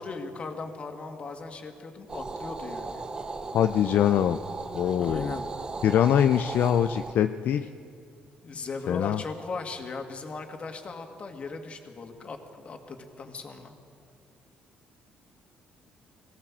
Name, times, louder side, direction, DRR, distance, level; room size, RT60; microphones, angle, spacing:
voice 1, 0.0-3.0 5.0-5.5 8.4-13.8, left 4 dB, 35° left, 5 dB, 2.1 m, -38 dB
sound 1, 2.1-7.1, right 3 dB, 25° right, 0.8 m, -37 dB
voice 2, 3.5-4.4 4.7-5.4 5.8-7.7 8.9-9.2, left 10 dB, 65° left, 9 dB, 0.5 m, -23 dB
21.0 x 17.0 x 7.4 m, 2.4 s
cardioid pair, 120°, 3 cm